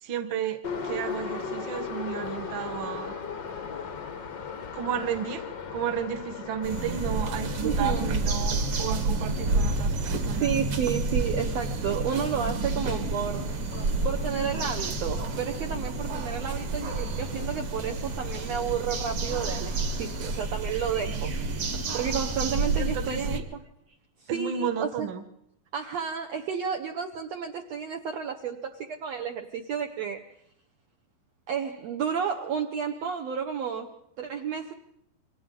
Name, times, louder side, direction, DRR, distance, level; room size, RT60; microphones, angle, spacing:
voice 1, 0.0-3.1 4.7-10.5 22.8-23.4 24.3-25.2, right 8 dB, 75° right, 7 dB, 1.1 m, -33 dB
Subway metro underground, 0.6-20.5, left 5 dB, 90° left, 0.9 m, -40 dB
sound 1, 6.6-23.4, right 3 dB, 50° right, 1.8 m, -29 dB
voice 2, 7.6-8.1 10.4-13.5 14.0-21.3 21.7-23.6 24.2-25.1 25.7-30.2 31.5-34.7, right 7 dB, 90° right, 3 dB, 1.4 m, -31 dB
28.5 x 24.0 x 3.9 m, 0.74 s
omnidirectional pair, 4.4 m